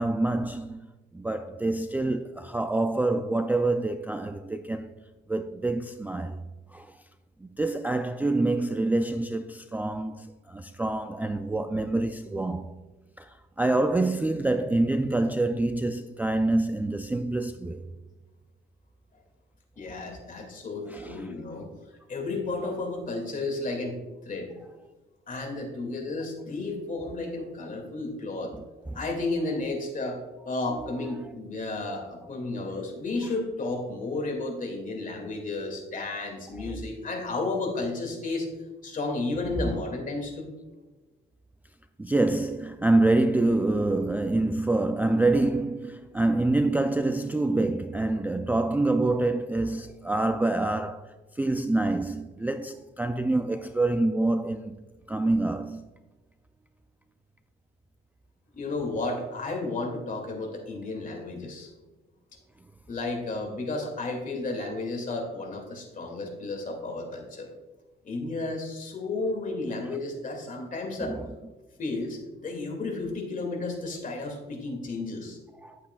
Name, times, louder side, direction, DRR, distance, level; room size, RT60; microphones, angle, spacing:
voice 1, 0.0-5.0 5.3-7.0 7.4-12.8 13.2-17.8 20.8-21.3 28.5-29.0 30.7-31.3 36.6-36.9 42.0-54.8 55.1-55.9 71.0-71.3 75.5-75.8, right 2 dB, 10° right, 0.3 m, -27 dB
voice 2, 19.8-21.7 22.1-24.0 24.2-24.6 25.3-28.5 28.9-38.5 38.8-40.5 58.5-61.7 62.9-67.5 68.0-71.2 71.8-75.4, left 2 dB, 40° left, 2.2 m, -32 dB
10.5 x 8.5 x 2.3 m
cardioid pair, 90°, 20 cm